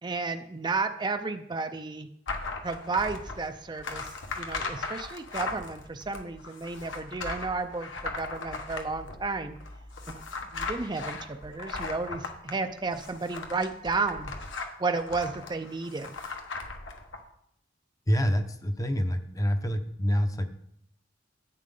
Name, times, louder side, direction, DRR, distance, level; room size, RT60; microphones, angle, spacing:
voice 1, 0.0-2.1 2.6-9.6 10.1-14.3 14.8-16.1, right 4 dB, 25° right, 7 dB, 0.5 m, -32 dB
sound 1, 2.3-17.2, left 3 dB, 75° left, 1.3 m, -38 dB
voice 2, 18.1-20.5, equal, 20° left, 7 dB, 0.7 m, -27 dB
11.0 x 8.6 x 3.8 m, 0.72 s
head